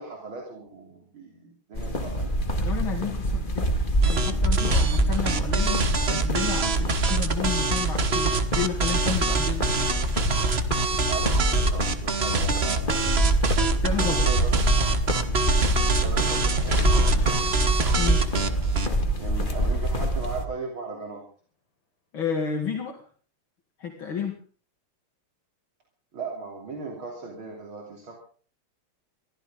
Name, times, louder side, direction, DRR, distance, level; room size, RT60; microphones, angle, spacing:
voice 1, 0.0-2.3 11.1-13.2 13.8-14.8 16.0-17.5 19.2-21.2 26.1-28.2, right 4 dB, 70° right, 0 dB, 3.9 m, -37 dB
sound 1, 1.7-20.4, right 1 dB, 25° left, 1.9 m, -26 dB
voice 2, 2.5-3.8 4.0-9.6 13.8-14.2 18.0-18.3 22.1-23.0 23.8-24.4, left 7 dB, 70° left, 2 dB, 3.0 m, -31 dB
sound 2, 4.0-18.9, right 3 dB, 35° right, 1.3 m, -25 dB
sound 3, 16.3-18.9 19.3-20.5, left 2 dB, 90° left, 3.5 m, -40 dB
23.0 x 15.5 x 3.7 m, 0.42 s
omnidirectional pair, 2.3 m